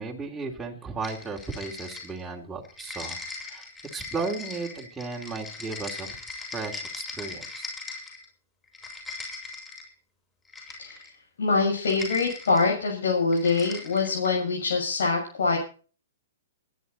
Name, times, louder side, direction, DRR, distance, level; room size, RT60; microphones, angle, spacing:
voice 1, 0.0-3.7 3.9-6.2 6.5-7.7, right 4 dB, 10° right, -2 dB, 3.1 m, -35 dB
sound 1, 1.0-2.3 2.6-8.3 8.6-9.9 10.5-11.2 11.8-12.7 13.3-14.4, left 3 dB, 10° left, 7.2 m, -39 dB
voice 2, 11.4-15.6, left 4 dB, 75° left, -2 dB, 7.2 m, -24 dB
22.5 x 10.5 x 4.1 m, 0.39 s
hypercardioid pair, 135°, 0 cm